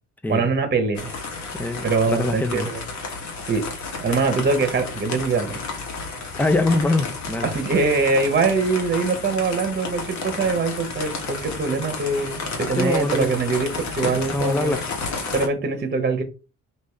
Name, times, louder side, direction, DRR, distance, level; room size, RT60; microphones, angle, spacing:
voice 1, 0.3-1.2 1.8-2.8 3.4-3.6 4.0-5.6 7.4-14.7 15.3-16.2, right 4 dB, 35° right, 7 dB, 1.0 m, -23 dB
sound 1, 1.0-15.5, left 4 dB, 65° left, 1.3 m, -32 dB
voice 2, 1.6-2.7 6.4-7.5 12.8-13.3 14.0-14.9, left 2 dB, 5° left, 8 dB, 0.5 m, -24 dB
5.2 x 2.6 x 3.2 m, 0.32 s
cardioid pair, 90°, 30 cm